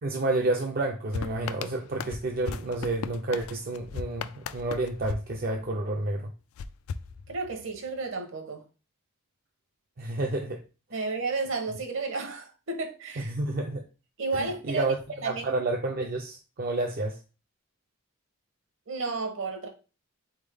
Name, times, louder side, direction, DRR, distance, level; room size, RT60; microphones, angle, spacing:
voice 1, 0.0-6.3 10.0-10.6 13.2-13.8 14.3-15.0 15.2-17.2, right 2 dB, 45° right, 0.4 m, -30 dB
sound 1, 1.1-6.0 6.6-7.8, left 6 dB, 75° left, 0.3 m, -38 dB
voice 2, 7.3-8.6 10.9-13.3 14.2-14.9 15.2-15.5 18.9-19.7, right 3 dB, 60° right, 1.0 m, -32 dB
4.0 x 3.5 x 3.4 m
head